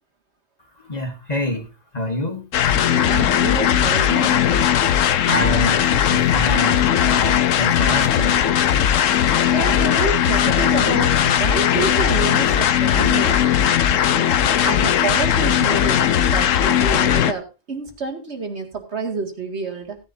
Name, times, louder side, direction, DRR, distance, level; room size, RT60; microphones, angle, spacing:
voice 1, 0.8-2.5 4.8-8.4, left 1 dB, 35° left, 4 dB, 1.6 m, -27 dB
sound 1, 2.5-17.3, left 9 dB, 90° left, 1.1 m, -18 dB
voice 2, 2.9-4.4 9.2-13.5 13.9-14.1 14.6-20.0, right 4 dB, 60° right, 3 dB, 2.3 m, -28 dB
16.0 x 10.5 x 2.7 m, 0.30 s
omnidirectional pair, 1.3 m